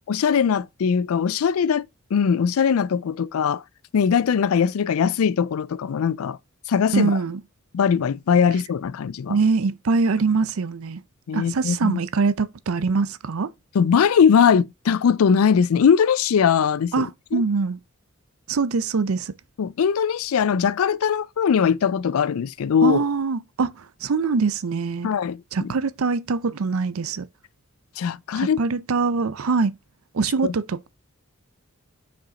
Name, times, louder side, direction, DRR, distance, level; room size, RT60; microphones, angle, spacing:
voice 1, 0.1-1.9 2.1-3.6 3.9-6.4 6.7-7.1 7.7-9.4 11.3-12.0 13.7-17.4 19.6-23.0 25.0-25.7 28.0-28.6 30.4-30.5, left 7 dB, 80° left, 0.4 m, -20 dB
voice 2, 6.9-7.4 9.3-11.0 11.3-13.5 16.9-17.8 18.5-19.3 22.8-25.1 25.5-27.3 28.4-29.7 30.1-30.9, right 4 dB, 80° right, 0.6 m, -23 dB
6.0 x 5.0 x 4.0 m
head